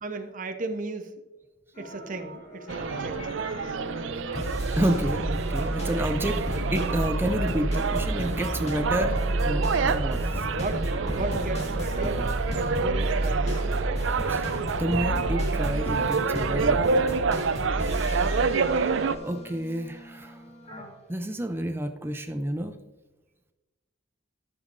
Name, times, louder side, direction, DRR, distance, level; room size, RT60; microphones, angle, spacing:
voice 1, 0.0-1.2 1.8-3.3 10.4-12.2 12.5-13.7, right 3 dB, 40° right, 5 dB, 0.9 m, -35 dB
sound 1, 1.8-20.9, right 1 dB, 35° left, 1.7 m, -31 dB
sound 2, 2.7-19.2, right 5 dB, 65° right, 0.5 m, -28 dB
voice 2, 4.8-10.4 14.3-14.5 14.8-16.9 19.2-20.4 21.1-22.8, equal, 10° right, 7 dB, 0.5 m, -30 dB
13.5 x 7.1 x 2.6 m, 1.1 s
head